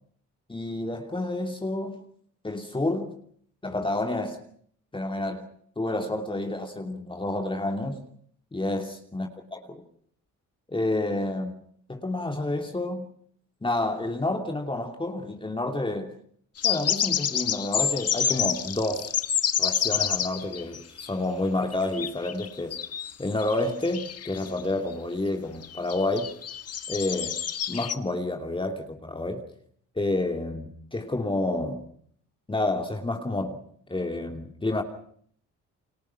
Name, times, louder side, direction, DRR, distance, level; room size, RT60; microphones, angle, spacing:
voice 1, 0.5-2.0 2.4-3.1 3.6-4.4 4.9-5.5 5.8-8.0 8.5-9.8 10.7-11.6 11.9-13.1 13.6-16.1 16.6-19.1 19.6-22.8 23.2-26.3 26.9-27.3 27.7-29.4 30.0-31.8 32.5-33.6 33.9-34.8, left 2 dB, 15° left, 2.9 m, -29 dB
sound 1, 16.6-21.1 21.7-24.6 24.9-25.0 25.6-27.9, left 8 dB, 55° left, 1.6 m, -28 dB
29.5 x 24.0 x 6.0 m
cardioid pair, 90°, 30 cm